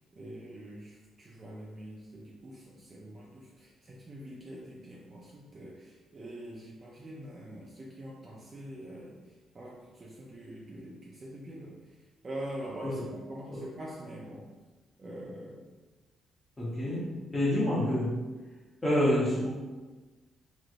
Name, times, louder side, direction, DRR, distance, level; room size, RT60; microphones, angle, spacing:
voice 1, 0.1-9.2 9.5-11.8 12.2-14.5 15.0-15.6, right 1 dB, 35° right, -3 dB, 0.4 m, -44 dB
voice 2, 16.6-18.2 18.8-19.5, left 1 dB, 20° left, -9 dB, 0.8 m, -28 dB
3.0 x 2.6 x 2.4 m, 1.3 s
cardioid pair, 90°, 0 cm